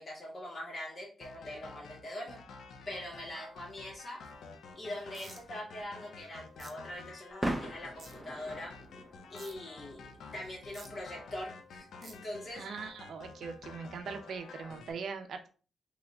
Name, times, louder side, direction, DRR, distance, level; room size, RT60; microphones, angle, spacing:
voice 1, 0.0-2.4 2.9-4.2 4.8-8.7 9.3-10.1 10.3-12.7, left 1 dB, 40° left, -4 dB, 1.8 m, -42 dB
sound 1, 1.2-14.9, left 4 dB, 80° left, 0.5 m, -51 dB
sound 2, 3.5-14.8, right 1 dB, 5° right, 0.5 m, -45 dB
sound 3, 5.1-5.4 6.6-6.7 8.0-8.1 9.4-9.5 10.7-10.9 12.0-12.1, right 4 dB, 45° right, 0.8 m, -50 dB
voice 2, 12.5-15.5, right 5 dB, 70° right, 6 dB, 0.5 m, -41 dB
4.0 x 3.1 x 2.3 m, 0.37 s
cardioid pair, 110°, 0 cm